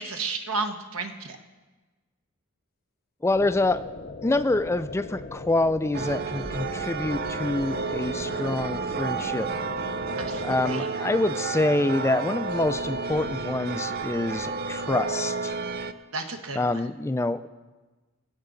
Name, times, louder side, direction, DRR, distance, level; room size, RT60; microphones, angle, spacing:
voice 1, 0.0-1.4 10.2-10.9 16.1-16.9, right 3 dB, 70° right, 6 dB, 1.1 m, -33 dB
voice 2, 3.2-3.8 4.2-9.5 10.4-15.6 16.6-17.5, left 2 dB, 10° left, 12 dB, 0.3 m, -26 dB
sound 1, 3.3-10.7, left 3 dB, 45° left, 0.8 m, -39 dB
sound 2, 5.9-15.9, right 4 dB, 45° right, 0.5 m, -31 dB
23.5 x 8.2 x 3.9 m, 1.2 s
head